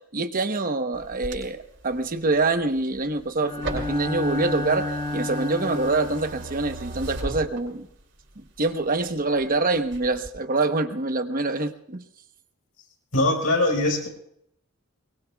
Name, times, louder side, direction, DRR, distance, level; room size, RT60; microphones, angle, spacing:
voice 1, 0.1-7.9 8.4-12.0, right 3 dB, 40° right, 8 dB, 1.0 m, -25 dB
sound 1, 0.9-8.0 8.5-9.5 9.8-10.3, right 2 dB, 55° right, 6.4 m, -37 dB
Bowed string instrument, 3.4-6.5, left 2 dB, 30° left, 3.4 m, -31 dB
voice 2, 13.1-14.1, left 2 dB, 75° left, 2 dB, 4.8 m, -22 dB
23.5 x 22.5 x 2.3 m, 0.73 s
head